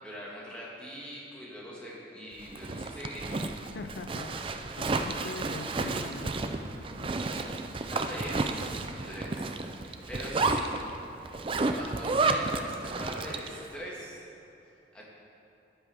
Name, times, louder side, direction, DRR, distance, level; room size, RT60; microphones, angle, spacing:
voice 1, 0.0-3.3 7.9-8.7 8.9-10.7 11.4-14.2 14.9-15.0, equal, 5° left, -6 dB, 1.8 m, -42 dB
Zipper (clothing), 2.4-13.6, right 3 dB, 30° right, 0.4 m, -32 dB
voice 2, 3.7-7.2, left 3 dB, 70° left, 9 dB, 0.4 m, -43 dB
12.5 x 11.0 x 3.5 m, 2.8 s
head